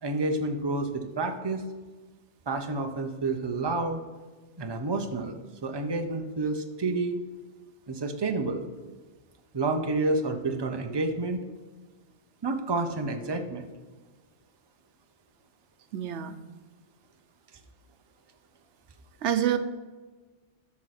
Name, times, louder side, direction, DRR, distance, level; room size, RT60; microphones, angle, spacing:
voice 1, 0.0-1.6 2.5-4.0 4.6-7.2 7.9-8.7 9.5-11.4 12.4-13.7, right 3 dB, 25° right, 5 dB, 0.7 m, -29 dB
voice 2, 15.9-16.3 19.2-19.6, right 10 dB, 90° right, 10 dB, 1.0 m, -26 dB
12.5 x 6.3 x 4.2 m, 1.3 s
omnidirectional pair, 1.2 m